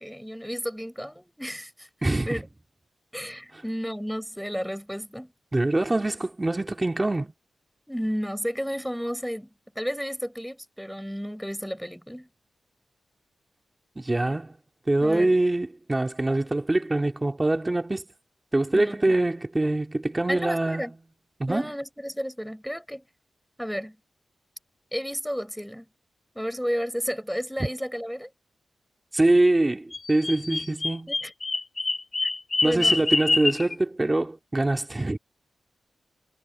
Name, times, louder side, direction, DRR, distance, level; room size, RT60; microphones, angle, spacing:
voice 1, 0.0-1.9 2.2-2.5 3.1-5.3 7.9-12.3 15.0-15.3 18.7-19.2 20.3-20.9 21.5-23.0 23.6-24.0 24.9-25.9 26.3-28.3 31.1-31.3 32.2-32.3 32.6-33.0, equal, ahead, 4.3 m, -32 dB
voice 2, 5.5-7.3 14.0-14.6 14.9-18.0 18.5-20.8 21.4-21.7 29.1-31.1 32.6-35.2, right 2 dB, 20° right, 2.4 m, -24 dB
Bird vocalization bird call bird song, 29.9-33.7, left 3 dB, 30° left, 4.9 m, -26 dB
wide cardioid pair, 125°, 0 cm